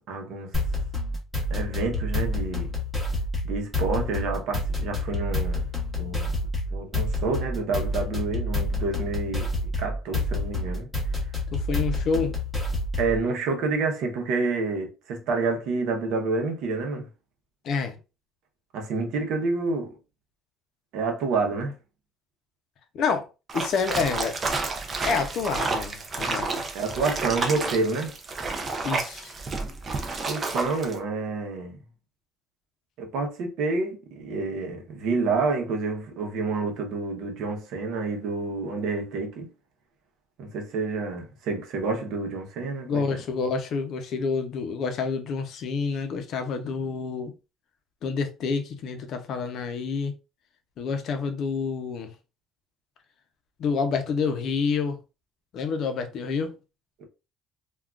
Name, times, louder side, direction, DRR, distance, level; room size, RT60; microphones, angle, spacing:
voice 1, 0.1-0.6 1.5-2.7 3.4-5.7 6.0-6.3 6.7-10.9 13.0-17.1 18.7-20.0 20.9-21.8 26.7-28.1 30.2-31.8 33.0-39.5 40.4-43.2, right 3 dB, 65° right, 0.8 m, -28 dB
sound 1, 0.5-13.2, left 2 dB, ahead, 0.9 m, -28 dB
voice 2, 11.5-12.4 17.6-18.0 22.9-23.3 23.5-24.6 25.0-26.6 28.8-29.3 42.8-47.3 48.0-50.1 50.8-52.1 53.6-55.0 55.5-56.6, left 5 dB, 50° left, 0.6 m, -28 dB
sound 2, 23.5-31.0, right 3 dB, 25° right, 0.5 m, -30 dB
3.6 x 2.3 x 2.3 m
cardioid pair, 160°, 0 cm